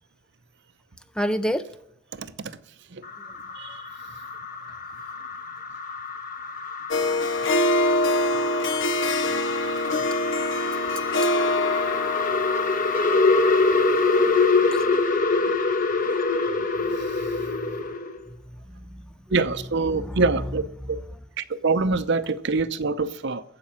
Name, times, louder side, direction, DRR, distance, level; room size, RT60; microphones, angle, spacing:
voice 1, 1.1-1.6 11.9-12.0 13.2-14.3 14.6-15.4 16.1-17.0 17.3-17.7 18.7-19.0 19.9-20.2, equal, 5° left, 11 dB, 0.5 m, -33 dB
voice 2, 2.1-2.6 2.9-3.0 3.6-3.8 8.4-8.9 17.2-17.3 19.3-21.0 21.4-23.4, right 3 dB, 55° right, 13 dB, 0.7 m, -26 dB
sound 1, 3.0-18.2, left 3 dB, 40° left, 1.2 m, -25 dB
Harp, 6.9-14.4, left 1 dB, 60° left, 0.7 m, -25 dB
14.5 x 5.4 x 8.7 m, 0.75 s
head